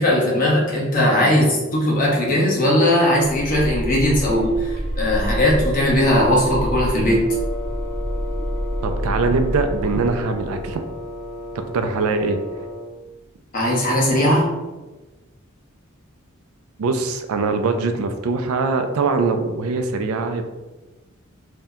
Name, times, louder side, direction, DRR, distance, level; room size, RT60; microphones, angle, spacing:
voice 1, 0.0-7.2 13.5-14.5, left 1 dB, 40° left, -4 dB, 0.9 m, -18 dB
sound 1, 3.3-12.1, equal, 60° right, 0.8 m, -28 dB
Wind instrument woodwind instrument, 7.2-13.0, left 1 dB, ahead, 0.7 m, -34 dB
voice 2, 8.8-10.8 11.7-12.4 16.8-20.5, right 4 dB, 85° right, 7 dB, 0.4 m, -22 dB
2.7 x 2.1 x 3.5 m, 1.1 s
head